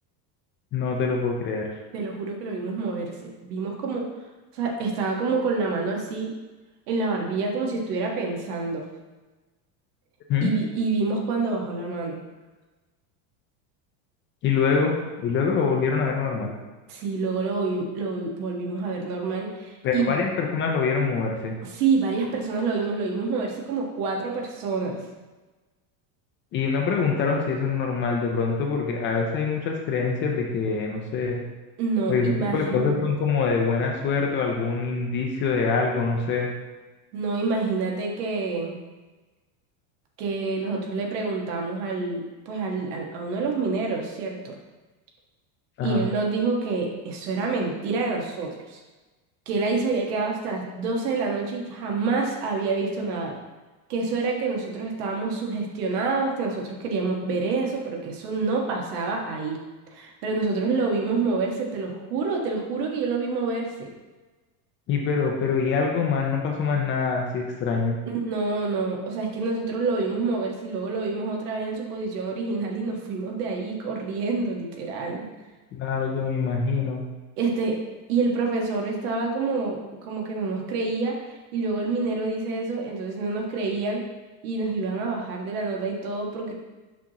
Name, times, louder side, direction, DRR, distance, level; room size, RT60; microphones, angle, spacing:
voice 1, 0.7-1.7 10.3-10.5 14.4-14.9 15.2-16.6 19.8-21.5 26.5-31.4 32.1-36.5 45.8-46.0 64.9-68.0 75.7-77.0, left 5 dB, 25° left, 1 dB, 0.4 m, -24 dB
voice 2, 1.9-4.0 4.5-6.3 6.9-8.9 10.4-12.2 16.9-20.1 21.6-25.0 31.8-33.1 37.1-38.8 40.2-44.6 45.8-48.8 49.4-53.4 53.9-59.6 59.9-63.9 68.1-75.3 77.4-77.8 78.1-84.0 84.4-86.5, right 4 dB, 75° right, 0 dB, 1.6 m, -27 dB
6.1 x 5.7 x 2.9 m, 1.2 s
cardioid pair, 160°, 46 cm